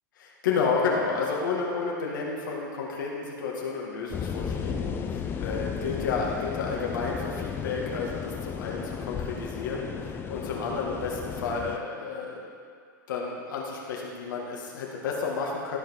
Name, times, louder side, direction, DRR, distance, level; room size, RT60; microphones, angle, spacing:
voice 1, 0.2-12.5 13.1-15.8, left 4 dB, 75° left, -2 dB, 2.0 m, -31 dB
sound 1, 4.1-11.8, left 6 dB, 20° left, 0.5 m, -34 dB
14.0 x 5.3 x 4.7 m, 2.1 s
hypercardioid pair, 135°, 11 cm